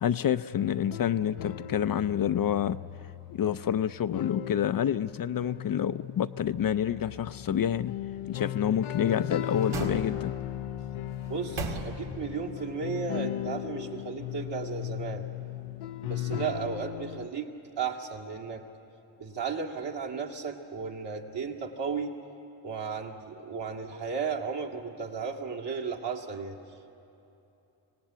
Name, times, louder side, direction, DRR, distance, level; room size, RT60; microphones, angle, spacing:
voice 1, 0.0-2.8 3.3-8.0 8.3-10.3, left 9 dB, 45° left, 12 dB, 0.5 m, -28 dB
sound 1, 0.5-17.3, left 12 dB, 90° left, 0.7 m, -37 dB
sound 2, 8.8-10.5 11.1-12.4 12.8-12.9, right 3 dB, 85° right, 2.1 m, -38 dB
voice 2, 11.3-15.2 16.0-18.6 19.2-22.1 22.6-26.6, right 5 dB, 60° right, 1 dB, 2.3 m, -34 dB
25.5 x 18.0 x 8.2 m, 2.9 s
cardioid pair, 75°, 48 cm